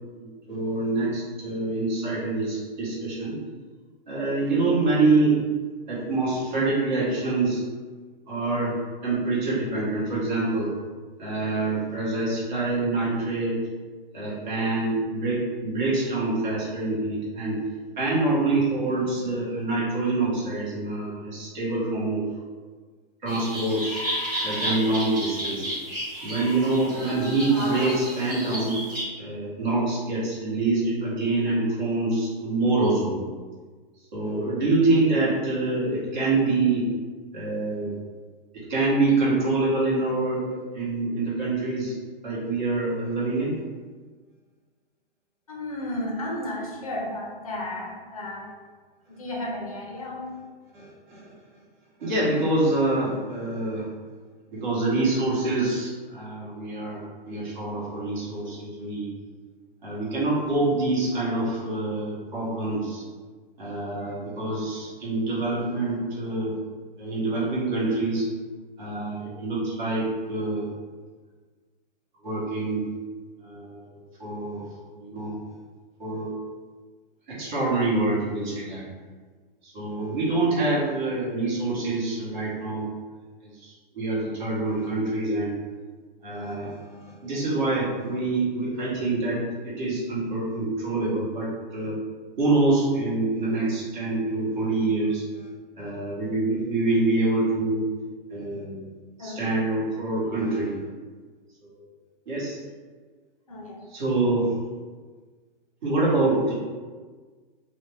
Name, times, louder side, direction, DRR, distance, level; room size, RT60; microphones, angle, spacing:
voice 1, 0.1-3.4 4.1-5.4 5.9-7.6 8.3-8.8 9.0-10.7 11.2-13.6 14.1-17.6 18.0-22.2 23.2-24.0 24.4-25.7 26.2-28.8 29.2-33.2 34.1-36.9 37.3-37.9 38.5-41.9 42.2-43.6 50.7-51.2 52.0-53.9 54.5-59.1 59.8-63.0 63.6-66.6 67.0-68.2 68.8-70.7 72.2-72.8 73.4-74.6 74.9-75.4 76.0-76.3 77.3-78.8 79.6-82.9 83.4-85.5 86.2-89.4 89.6-92.0 92.4-95.5 95.8-97.8 98.3-98.8 99.2-100.8 101.6-101.7 102.3-102.6 103.9-104.5 105.8-106.5, right 2 dB, 55° right, -7 dB, 1.0 m, -26 dB
sound 1, 23.3-29.0, equal, 20° right, 0.5 m, -32 dB
voice 2, 45.5-48.5 49.1-50.3 99.2-99.4 103.5-103.8, left 1 dB, 40° left, -2 dB, 0.4 m, -33 dB
2.5 x 2.1 x 3.1 m, 1.4 s
hypercardioid pair, 175°, 29 cm